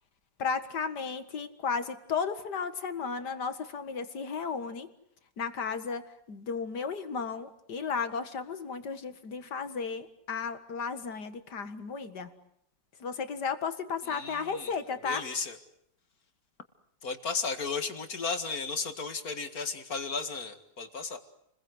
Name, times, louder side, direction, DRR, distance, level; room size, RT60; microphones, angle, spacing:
voice 1, 0.4-4.9 5.4-12.3 13.0-15.2, left 5 dB, 85° left, 10 dB, 2.4 m, -34 dB
voice 2, 14.0-14.7 15.0-15.6 17.0-21.2, left 4 dB, 60° left, 7 dB, 2.5 m, -34 dB
30.0 x 21.5 x 8.0 m, 0.74 s
omnidirectional pair, 1.8 m